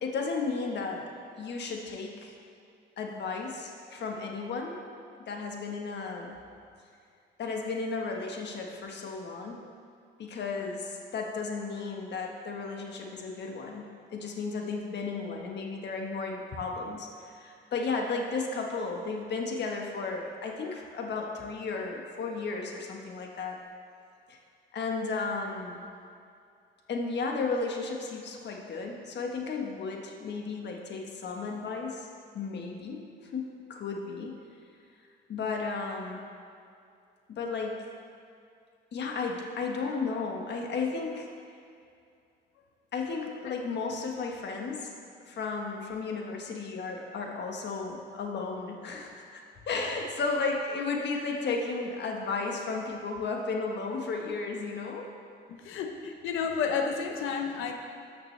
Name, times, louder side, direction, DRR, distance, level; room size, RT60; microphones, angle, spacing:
voice 1, 0.0-2.3 3.0-4.8 5.3-6.3 7.4-9.6 10.2-13.8 14.1-23.6 24.3-24.4 24.7-25.8 26.9-32.1 32.3-33.0 33.3-34.3 35.3-36.2 37.3-37.8 38.9-41.3 42.9-44.9 45.3-55.1, left 4 dB, 60° left, 1 dB, 1.3 m, -34 dB
voice 2, 55.6-57.7, left 6 dB, 90° left, 4 dB, 0.8 m, -31 dB
13.5 x 5.9 x 3.3 m, 2.4 s
cardioid pair, 90°, 20 cm